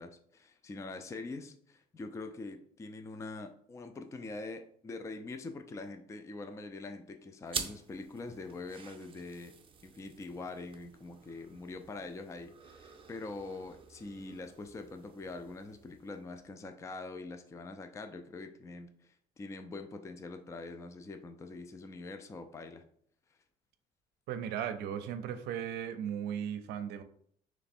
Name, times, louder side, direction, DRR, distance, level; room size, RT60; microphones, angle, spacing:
voice 1, 0.0-9.5 9.8-22.8, left 3 dB, 15° left, 7 dB, 0.4 m, -44 dB
sound 1, 7.5-16.4, right 6 dB, 30° right, 0.6 m, -47 dB
voice 2, 24.3-27.0, right 9 dB, 85° right, 10 dB, 0.5 m, -36 dB
3.3 x 3.1 x 4.2 m, 0.63 s
cardioid pair, 110°, 17 cm